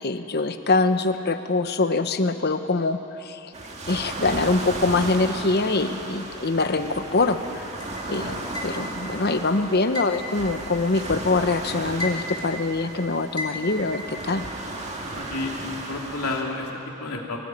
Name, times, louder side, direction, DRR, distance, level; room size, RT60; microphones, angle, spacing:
voice 1, 0.0-3.5 3.9-7.6 8.1-14.4, left 3 dB, 45° left, 9 dB, 0.9 m, -24 dB
sound 1, 3.5-16.4, right 2 dB, 30° right, 2.0 m, -35 dB
sound 2, 7.8-9.1 9.9-11.3 11.7-12.6 13.4-14.2, left 2 dB, 20° left, 2.5 m, -34 dB
voice 2, 15.1-17.4, left 2 dB, 85° left, 0 dB, 2.9 m, -31 dB
22.5 x 15.0 x 9.2 m, 2.9 s
head